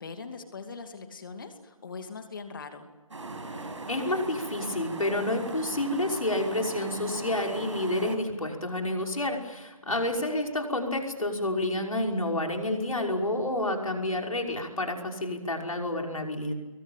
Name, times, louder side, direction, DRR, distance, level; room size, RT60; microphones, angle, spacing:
voice 1, 0.0-2.9 9.9-10.3, left 4 dB, 40° left, 7 dB, 2.6 m, -41 dB
sound 1, 3.1-8.2, right 2 dB, 60° right, 6.0 m, -39 dB
voice 2, 3.9-16.5, left 1 dB, 80° left, 2 dB, 5.8 m, -29 dB
28.5 x 22.5 x 9.0 m, 1.2 s
figure-of-eight pair, 160°, 17 cm